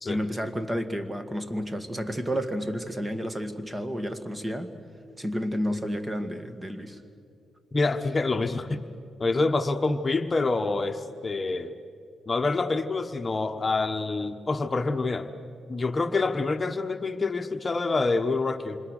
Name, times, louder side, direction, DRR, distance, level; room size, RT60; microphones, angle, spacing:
voice 1, 0.1-4.7 5.2-7.0, equal, 20° right, 9 dB, 2.1 m, -31 dB
voice 2, 7.7-8.8 9.2-11.7 12.3-15.3 15.7-18.8, left 3 dB, 35° left, 7 dB, 1.2 m, -26 dB
28.0 x 25.5 x 6.6 m, 2.5 s
supercardioid pair, 60°, 0 cm